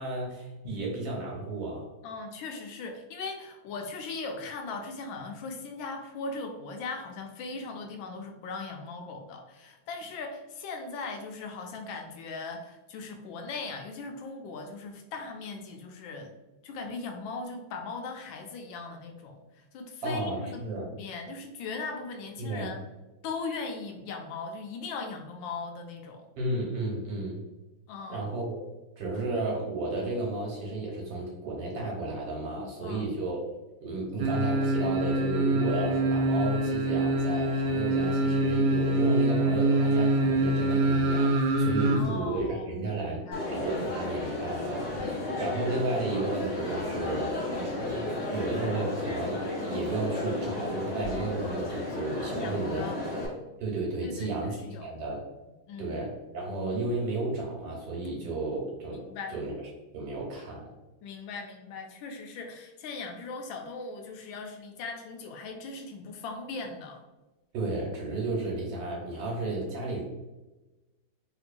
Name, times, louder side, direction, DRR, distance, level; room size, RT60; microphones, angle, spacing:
voice 1, 0.0-1.9 20.0-20.9 22.4-22.7 26.4-27.4 28.1-28.7 29.0-33.4 33.8-53.2 53.6-54.6 54.8-55.2 55.8-59.5 59.9-60.7 67.5-70.1, right 2 dB, 70° right, -2 dB, 1.7 m, -33 dB
voice 2, 2.0-16.3 16.6-22.8 23.2-26.3 27.9-28.3 32.6-33.2 41.8-43.4 52.3-53.0 54.0-54.9 55.7-56.0 58.9-59.3 61.0-67.0, left 4 dB, 75° left, 4 dB, 1.3 m, -39 dB
sound 1, 34.2-42.0 42.4-42.5, right 1 dB, 90° right, 0.8 m, -25 dB
Crowd, 43.3-53.3, left 2 dB, 45° left, 0.8 m, -33 dB
3.5 x 2.9 x 2.5 m, 1.1 s
omnidirectional pair, 2.2 m